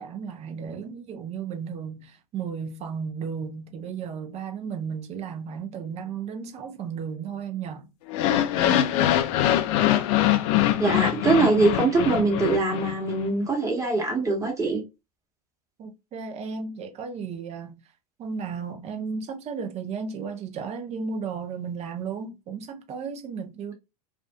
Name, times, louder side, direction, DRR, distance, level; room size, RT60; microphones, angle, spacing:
voice 1, 0.0-7.9 15.8-17.8 18.2-23.7, right 6 dB, 30° right, 0.6 m, -34 dB
sound 1, 8.1-13.2, left 12 dB, 50° left, 0.4 m, -23 dB
voice 2, 10.8-14.8, right 3 dB, 15° right, 1.2 m, -23 dB
2.5 x 2.4 x 2.2 m
hypercardioid pair, 90°, 20 cm